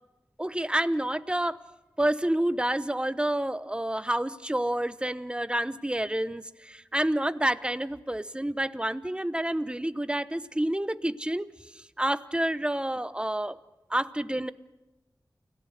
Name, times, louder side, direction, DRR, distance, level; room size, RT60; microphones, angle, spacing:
voice 1, 0.4-1.6 2.0-11.5 11.7-13.6 13.9-14.5, right 1 dB, 10° right, 13 dB, 0.9 m, -29 dB
29.5 x 17.5 x 6.6 m, 1.1 s
wide cardioid pair, 50°, 8 cm